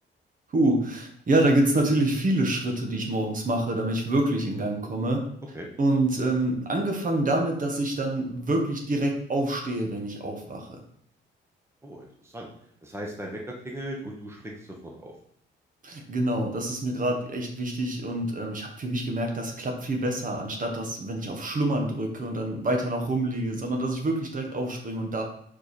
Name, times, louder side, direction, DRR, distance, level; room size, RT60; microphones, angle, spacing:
voice 1, 0.5-5.2 5.8-10.7 15.8-25.2, right 1 dB, 45° right, 2 dB, 1.4 m, -26 dB
voice 2, 11.8-12.5 12.8-15.1, right 1 dB, 15° right, 0 dB, 1.1 m, -38 dB
5.0 x 4.4 x 4.3 m, 0.68 s
cardioid pair, 90°, 20 cm